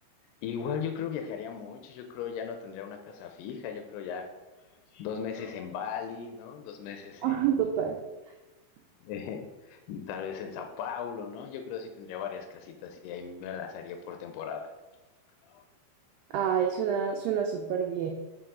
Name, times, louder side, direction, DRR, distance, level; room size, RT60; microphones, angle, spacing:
voice 1, 0.4-4.3 4.9-7.5 9.0-14.7 15.4-15.6, left 7 dB, 90° left, 5 dB, 2.6 m, -37 dB
voice 2, 7.2-8.0 16.3-18.1, right 8 dB, 85° right, 3 dB, 2.0 m, -27 dB
5.8 x 4.6 x 3.7 m, 1.1 s
omnidirectional pair, 4.5 m